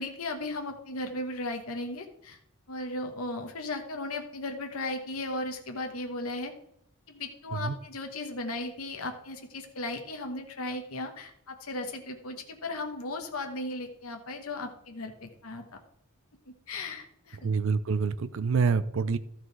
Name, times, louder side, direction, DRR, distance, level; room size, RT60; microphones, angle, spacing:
voice 1, 0.0-2.4 2.7-6.5 7.1-15.6 16.5-17.5, left 2 dB, 75° left, 4 dB, 1.2 m, -36 dB
voice 2, 17.4-19.2, right 5 dB, 60° right, 14 dB, 0.5 m, -27 dB
12.5 x 6.0 x 4.7 m, 0.73 s
head